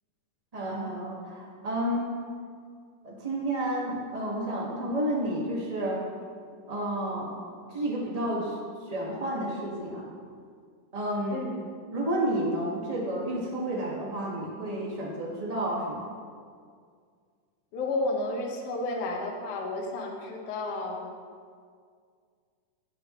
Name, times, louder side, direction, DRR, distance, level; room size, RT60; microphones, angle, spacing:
voice 1, 0.5-2.1 3.0-6.0 6.7-7.3 7.7-8.5 8.9-10.0 10.9-11.4 11.9-16.1, right 1 dB, 40° right, -4 dB, 0.5 m, -30 dB
voice 2, 11.3-11.6 17.7-21.0, left 2 dB, 60° left, 0 dB, 1.8 m, -32 dB
17.5 x 6.8 x 3.1 m, 2.1 s
omnidirectional pair, 3.8 m